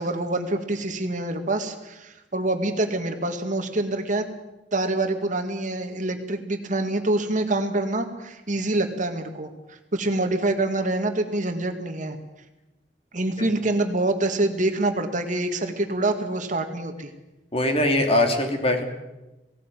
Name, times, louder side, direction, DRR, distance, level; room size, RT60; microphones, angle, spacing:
voice 1, 0.0-4.3 4.7-12.2 13.1-17.1, right 2 dB, 45° right, 6 dB, 2.0 m, -26 dB
voice 2, 17.5-18.8, left 1 dB, 35° left, 4 dB, 2.9 m, -21 dB
18.0 x 17.5 x 9.2 m, 1.0 s
head